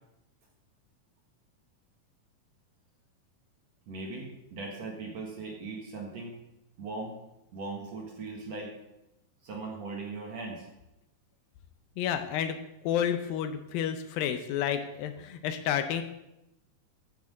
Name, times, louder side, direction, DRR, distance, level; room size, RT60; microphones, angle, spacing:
voice 1, 3.9-6.4 6.8-7.2 7.5-8.7 9.4-10.7, right 3 dB, 55° right, 0 dB, 2.2 m, -39 dB
voice 2, 12.0-12.6 12.8-16.0, left 9 dB, 80° left, 8 dB, 2.4 m, -30 dB
8.7 x 6.8 x 7.7 m, 0.92 s
omnidirectional pair, 4.3 m